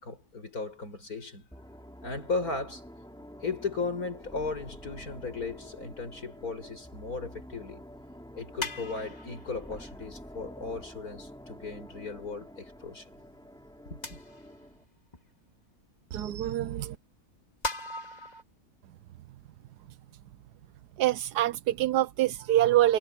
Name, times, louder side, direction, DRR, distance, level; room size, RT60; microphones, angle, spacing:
voice 1, 0.0-1.5 2.0-2.8 3.4-7.8 8.3-13.1 13.9-14.2, left 4 dB, 65° left, 6.3 m, -36 dB
sound 1, 1.5-14.8, equal, 5° left, 2.9 m, -48 dB
sound 2, 6.4-6.5 7.5-7.6 8.6-10.3 10.8-10.9 11.9-12.0 13.0-13.1 14.0-14.7 15.1-15.2 16.2-16.3 17.3-18.4, left 1 dB, 25° left, 2.2 m, -39 dB
voice 2, 16.1-17.0 21.0-23.0, right 13 dB, 90° right, 1.3 m, -25 dB
omnidirectional pair, 1.7 m